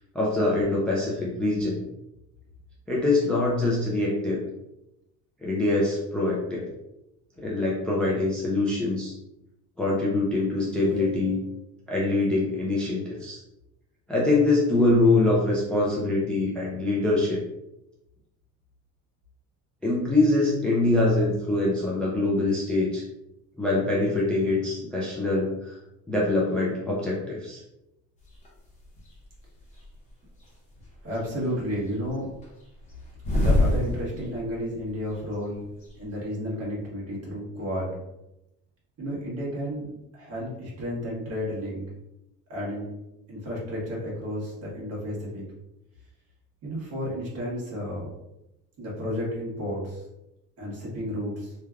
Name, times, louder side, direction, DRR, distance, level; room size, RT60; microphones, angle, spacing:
voice 1, 0.1-1.8 2.9-4.4 5.4-6.7 7.4-9.1 9.8-11.4 11.9-13.4 14.1-17.4 19.8-23.0 23.6-25.8 26.1-27.6, left 2 dB, 5° left, -5 dB, 0.3 m, -24 dB
sound 1, 10.7-11.7, right 3 dB, 70° right, 1.0 m, -39 dB
sound 2, 28.3-28.5 29.0-29.9 30.4-31.2 31.5-34.6 34.9-35.0 35.2-36.0, left 1 dB, 20° left, 0.8 m, -26 dB
voice 2, 31.0-32.3 33.3-35.6 36.0-38.0 39.0-41.9 42.5-42.9 43.3-45.4 46.6-48.1 48.8-50.0 50.6-51.5, equal, 50° right, -5 dB, 1.3 m, -32 dB
3.2 x 2.2 x 2.3 m, 0.91 s
cardioid pair, 145°, 32 cm